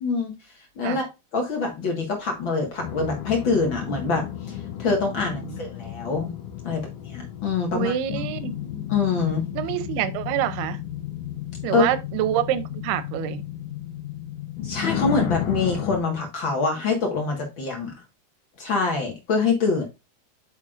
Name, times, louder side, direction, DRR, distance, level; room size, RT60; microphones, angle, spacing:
voice 1, 0.0-0.3 0.7-1.1 1.3-6.3 6.6-7.9 8.9-9.5 11.7-11.8 14.6-17.9 18.6-19.9, left 4 dB, 50° left, 1.5 m, -25 dB
sound 1, 2.8-16.0, left 11 dB, 75° left, 1.9 m, -33 dB
voice 2, 7.7-8.6 9.5-10.8 11.6-13.4, right 12 dB, 85° right, 2.7 m, -26 dB
8.3 x 6.4 x 2.5 m
omnidirectional pair, 4.6 m